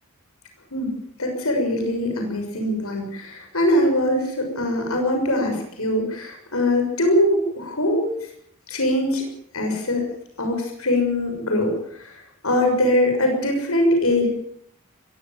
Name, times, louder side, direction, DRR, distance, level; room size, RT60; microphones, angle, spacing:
voice 1, 1.2-8.3 8.7-9.2 9.5-10.0 10.4-14.3, left 1 dB, 80° left, 3 dB, 6.6 m, -22 dB
22.0 x 17.0 x 7.5 m, 0.69 s
head